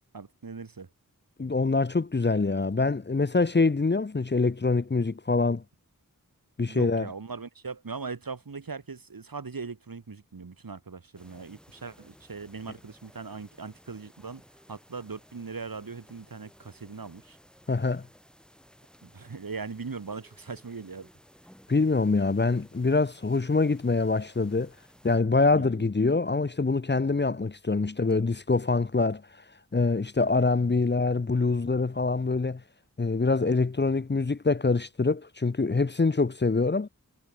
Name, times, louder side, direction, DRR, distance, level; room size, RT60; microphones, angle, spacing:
voice 1, 0.1-0.9 6.6-14.4 14.7-17.4 19.0-21.1 25.5-25.9, right 4 dB, 80° right, 3.8 m, -40 dB
voice 2, 1.4-5.6 6.6-7.1 17.7-18.0 21.7-24.7 25.0-29.2 29.7-32.6 33.0-36.9, left 3 dB, 30° left, 0.8 m, -25 dB
sound 1, 11.1-25.2, equal, ahead, 5.9 m, -57 dB
wide cardioid pair, 80°, 34 cm